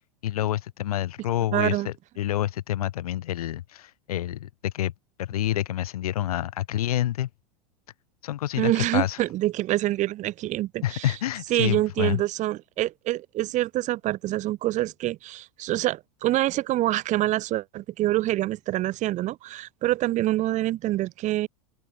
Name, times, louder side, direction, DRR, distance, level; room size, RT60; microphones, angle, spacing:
voice 1, 0.2-4.9 5.2-7.3 8.2-9.2 10.8-12.2, left 13 dB, 80° left, 0.9 m, -28 dB
voice 2, 1.5-1.9 8.6-11.1 11.5-21.5, right 15 dB, 40° right, 1.0 m, -26 dB
open air
hypercardioid pair, 100°, 19 cm